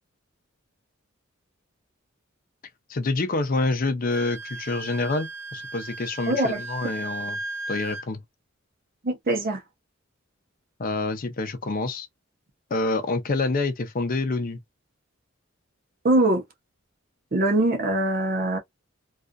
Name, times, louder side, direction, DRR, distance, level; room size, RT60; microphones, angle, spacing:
voice 1, 2.9-7.4 7.7-8.2 10.8-12.1 12.7-14.6, left 3 dB, 45° left, 0.5 m, -27 dB
Wind instrument woodwind instrument, 4.1-8.1, right 2 dB, 80° right, 0.8 m, -36 dB
voice 2, 6.3-6.6 9.0-9.6 16.0-16.4 17.3-18.6, right 1 dB, 45° right, 0.7 m, -22 dB
2.4 x 2.4 x 2.2 m
head